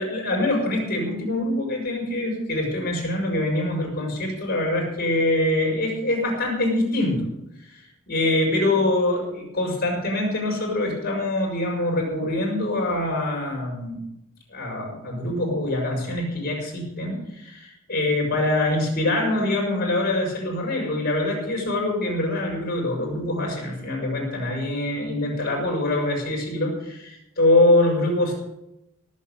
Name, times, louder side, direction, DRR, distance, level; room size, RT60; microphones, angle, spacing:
voice 1, 0.0-7.3 7.6-14.0 14.5-28.3, left 1 dB, 45° left, -2 dB, 6.7 m, -24 dB
18.0 x 8.6 x 6.9 m, 0.87 s
head